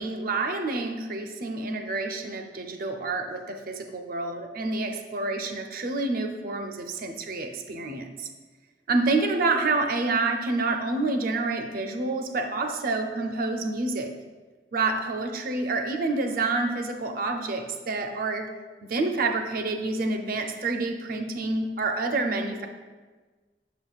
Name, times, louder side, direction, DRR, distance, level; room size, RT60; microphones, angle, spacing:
voice 1, 0.0-8.3 8.9-14.1 14.7-18.5 18.8-22.7, right 3 dB, 55° right, 5 dB, 0.6 m, -28 dB
6.8 x 5.9 x 2.4 m, 1.3 s
head